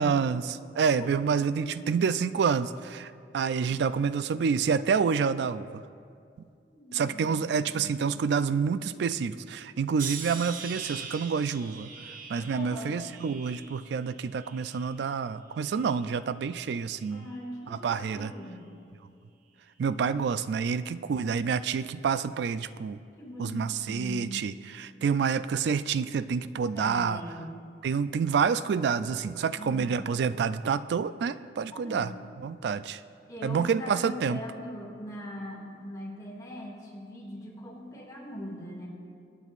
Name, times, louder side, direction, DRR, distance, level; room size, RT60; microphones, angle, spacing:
voice 1, 0.0-5.8 6.9-11.9 12.3-17.3 17.7-18.3 19.8-23.0 23.4-27.2 27.8-32.1 32.4-33.0 33.4-34.4, right 6 dB, 70° right, 14 dB, 0.3 m, -28 dB
voice 2, 1.0-1.3 1.6-1.7 6.7-7.4 7.7-7.9 12.4-13.0 17.1-18.6 23.2-24.6 26.7-27.5 29.6-30.1 31.7-32.1 33.3-38.9, equal, 20° left, -3 dB, 2.0 m, -41 dB
sound 1, 10.0-15.1 15.6-16.3 17.0-17.3, right 5 dB, 50° right, 0.8 m, -43 dB
23.0 x 9.0 x 2.5 m, 2.3 s
head